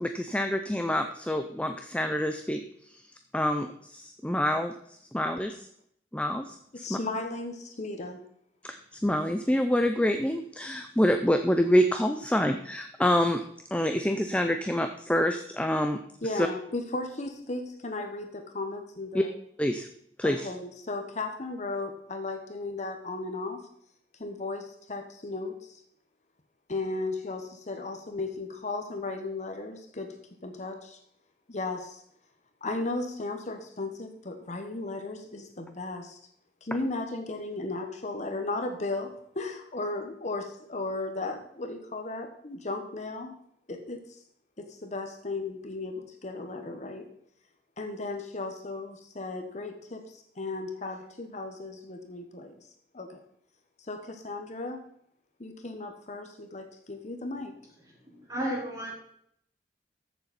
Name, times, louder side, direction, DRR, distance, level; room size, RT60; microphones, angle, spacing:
voice 1, 0.0-2.6 2.9-3.0 3.3-4.7 5.1-5.7 6.1-7.0 8.6-13.4 13.7-16.0 16.4-16.5 19.1-19.2 19.6-19.9 20.2-20.5, equal, 5° left, 6 dB, 0.6 m, -26 dB
voice 2, 6.8-8.2 16.2-19.3 20.2-23.6 24.2-25.8 26.7-30.1 30.4-31.0 31.5-32.0 32.6-36.2 36.6-39.1 39.3-43.3 43.7-44.2 44.6-47.1 47.8-52.5 52.9-53.2 53.9-54.8 55.4-57.5, left 2 dB, 40° left, 5 dB, 1.2 m, -35 dB
voice 3, 58.0-58.9, right 1 dB, 20° right, -3 dB, 4.0 m, -33 dB
14.5 x 7.1 x 4.2 m, 0.69 s
head